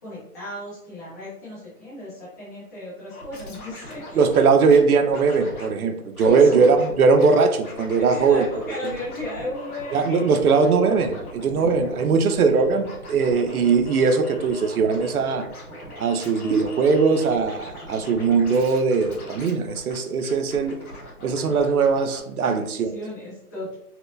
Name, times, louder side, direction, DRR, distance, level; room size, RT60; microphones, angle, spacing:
voice 1, 0.0-4.2 6.2-6.6 8.0-10.3 11.6-11.8 21.4-21.6 22.4-23.7, left 1 dB, 10° left, -11 dB, 0.6 m, -35 dB
Scratching (performance technique), 3.1-4.8 5.1-5.7 6.1-6.9 7.2-22.2 22.4-22.5, left 1 dB, 70° left, 1.2 m, -40 dB
voice 2, 4.1-8.5 9.9-15.5 16.0-20.8 21.2-22.9, right 5 dB, 70° right, 8 dB, 0.6 m, -20 dB
4.2 x 2.1 x 2.5 m, 0.79 s
hypercardioid pair, 160°, 45 cm